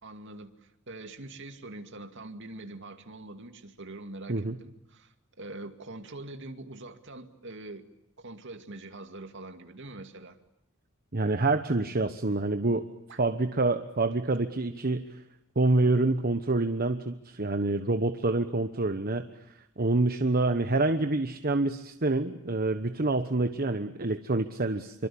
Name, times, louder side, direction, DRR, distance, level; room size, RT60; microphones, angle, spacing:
voice 1, 0.0-7.8 8.2-10.4 13.1-13.2, right 2 dB, 60° right, 7 dB, 2.4 m, -44 dB
voice 2, 11.1-12.9 13.2-15.2 15.5-19.3 19.5-25.1, right 2 dB, 45° right, 8 dB, 1.1 m, -27 dB
27.5 x 24.5 x 8.7 m, 0.81 s
head